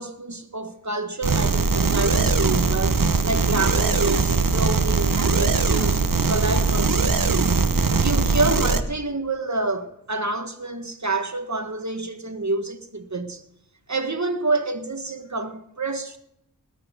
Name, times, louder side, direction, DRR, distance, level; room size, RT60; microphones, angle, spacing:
voice 1, 0.0-13.4 13.9-16.2, right 3 dB, 50° right, 1.6 m, -28 dB
sound 1, 1.2-8.8, right 4 dB, 65° right, 1.1 m, -21 dB
20.0 x 8.7 x 5.2 m
wide cardioid pair, 40°, 35 cm